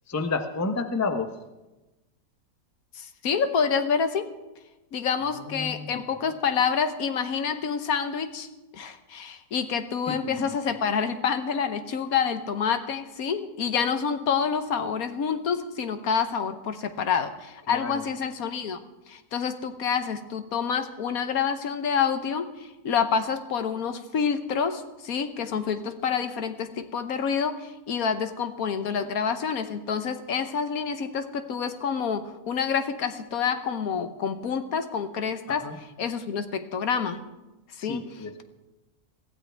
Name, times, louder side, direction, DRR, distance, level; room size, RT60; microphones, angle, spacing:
voice 1, 0.1-1.3 5.3-6.0 10.1-10.5 17.7-18.0 35.5-35.7 37.8-38.4, left 3 dB, 15° left, 7 dB, 0.5 m, -31 dB
voice 2, 2.9-4.3 4.9-8.5 8.7-35.7 36.0-37.2 37.7-38.0, left 6 dB, 65° left, 9 dB, 1.3 m, -28 dB
21.5 x 15.5 x 3.4 m, 1.1 s
omnidirectional pair, 1.7 m